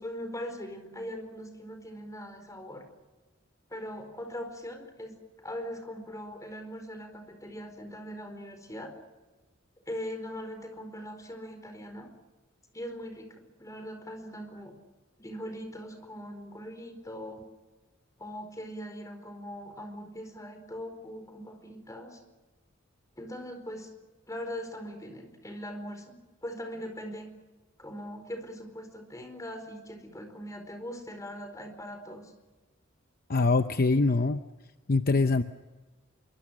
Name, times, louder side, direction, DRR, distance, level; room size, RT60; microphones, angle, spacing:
voice 1, 0.0-2.9 3.7-5.2 5.4-9.0 9.9-12.1 12.7-14.7 15.2-17.4 18.2-22.2 23.2-23.9 24.3-26.2 26.4-27.3 27.8-32.3, equal, 15° left, 6 dB, 4.6 m, -41 dB
voice 2, 33.3-34.4 34.9-35.4, left 3 dB, 45° left, 9 dB, 0.8 m, -23 dB
26.5 x 24.0 x 6.4 m, 1.2 s
head